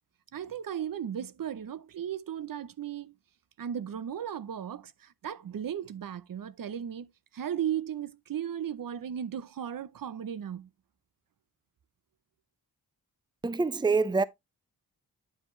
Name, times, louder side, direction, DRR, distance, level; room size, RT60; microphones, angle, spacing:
voice 1, 0.3-3.1 3.6-10.7, right 9 dB, 60° right, 0.7 m, -36 dB
voice 2, 13.4-14.2, right 4 dB, 10° right, 0.6 m, -25 dB
9.6 x 5.2 x 3.2 m
cardioid pair, 65°, 38 cm